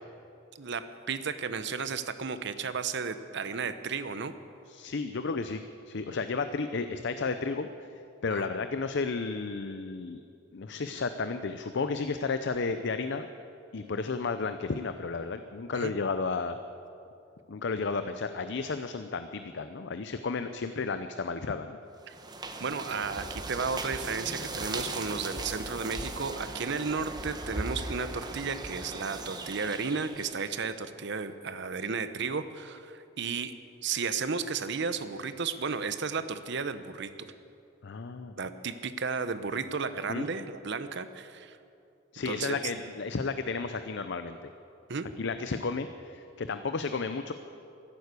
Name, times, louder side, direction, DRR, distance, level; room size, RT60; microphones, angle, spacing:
voice 1, 0.6-4.3 8.3-8.4 15.7-15.9 22.1-22.2 22.6-33.5 33.8-37.1 38.4-41.6 42.2-42.6 44.9-45.1, right 5 dB, 60° right, 11 dB, 0.8 m, -33 dB
voice 2, 4.7-5.6 5.9-7.9 8.2-10.2 10.5-13.3 13.7-16.6 17.5-21.8 37.8-38.3 40.1-40.3 42.1-44.5 45.2-47.3, left 4 dB, 60° left, 9 dB, 0.6 m, -32 dB
sound 1, 22.0-30.4, right 2 dB, 20° right, 1.0 m, -38 dB
14.0 x 11.5 x 8.2 m, 2.6 s
head